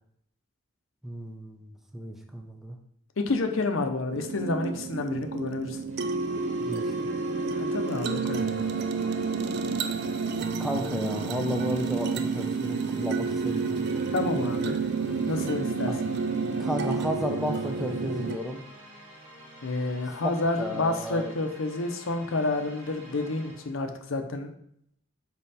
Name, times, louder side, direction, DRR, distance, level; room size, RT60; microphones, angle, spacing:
voice 1, 1.0-2.8 6.7-7.1 10.6-13.8 16.6-18.6 20.2-21.3, equal, ahead, 3 dB, 0.6 m, -33 dB
voice 2, 3.2-5.8 7.4-8.6 14.1-14.8 15.3-15.9 19.6-24.5, left 2 dB, 85° left, 5 dB, 0.7 m, -29 dB
sound 1, 4.1-18.4, right 4 dB, 55° right, 0.4 m, -30 dB
sound 2, 5.9-23.8, equal, 70° right, 2.3 m, -49 dB
5.4 x 4.5 x 4.2 m, 0.69 s
head